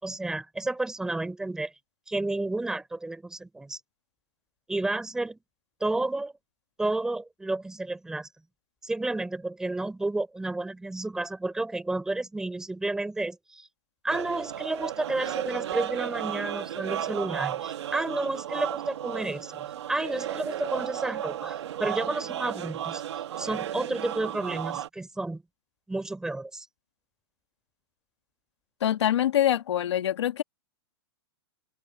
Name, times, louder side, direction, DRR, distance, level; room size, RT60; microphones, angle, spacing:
voice 1, 0.0-1.7 2.1-3.8 4.7-5.4 5.8-6.3 6.8-8.3 8.8-13.7 14.0-19.6 19.9-23.0 23.4-25.4 25.9-26.7, right 2 dB, 5° right, 4.8 m, -31 dB
sound 1, 14.1-24.9, right 11 dB, 80° right, 2.9 m, -34 dB
voice 2, 28.8-30.4, left 11 dB, 85° left, 2.1 m, -24 dB
open air
supercardioid pair, 165°, 14 cm